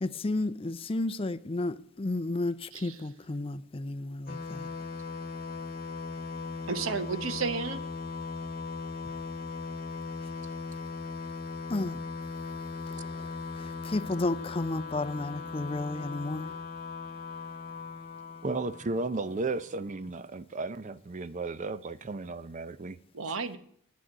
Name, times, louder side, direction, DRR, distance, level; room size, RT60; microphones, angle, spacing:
voice 1, 0.0-4.7 11.7-12.0 12.9-16.6, left 2 dB, 25° left, 0.5 m, -33 dB
sound 1, 4.3-19.7, left 4 dB, 45° left, 1.1 m, -39 dB
voice 2, 6.7-7.8 23.1-23.6, right 5 dB, 70° right, 1.0 m, -32 dB
voice 3, 18.4-23.0, right 3 dB, 35° right, 0.5 m, -34 dB
9.5 x 6.3 x 8.7 m
head